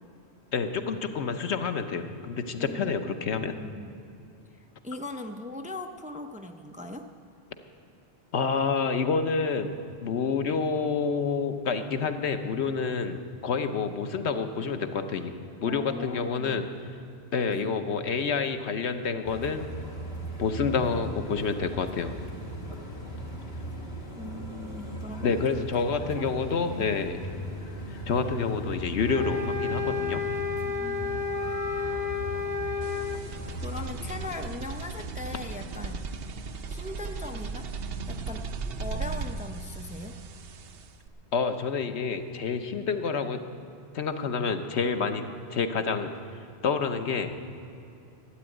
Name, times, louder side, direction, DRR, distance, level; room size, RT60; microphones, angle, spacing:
voice 1, 0.5-3.5 8.3-9.7 10.0-15.3 15.6-16.6 17.3-19.6 20.4-22.1 25.2-27.2 28.1-30.2 41.3-43.4 43.9-45.2 45.5-46.1 46.6-47.3, left 5 dB, 85° left, 8 dB, 1.2 m, -28 dB
voice 2, 2.6-3.9 4.5-7.1 15.6-16.6 17.5-17.7 24.1-26.9 30.6-31.4 33.5-36.0 36.7-37.7 38.1-38.5 38.8-40.2, left 1 dB, 10° right, 5 dB, 0.5 m, -40 dB
sound 1, 19.2-34.5, right 1 dB, 65° left, 2.0 m, -38 dB
sound 2, 29.0-33.2, left 5 dB, 15° left, 0.9 m, -31 dB
sound 3, 32.8-41.1, right 4 dB, 65° right, 0.9 m, -37 dB
13.0 x 8.8 x 9.1 m, 2.6 s
omnidirectional pair, 1.1 m